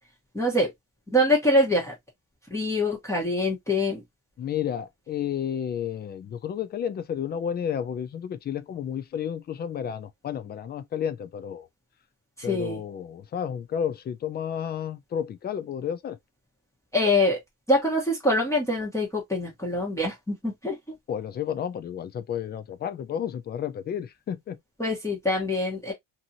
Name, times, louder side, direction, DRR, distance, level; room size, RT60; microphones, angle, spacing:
voice 1, 0.3-0.7 1.1-1.9 2.5-4.0 12.4-12.8 16.9-17.4 17.7-21.0 24.8-25.9, left 1 dB, 5° left, 1.2 m, -24 dB
voice 2, 4.4-11.7 12.4-16.2 21.1-24.6, left 9 dB, 25° left, 0.4 m, -31 dB
2.7 x 2.6 x 2.8 m
cardioid pair, 115°, 39 cm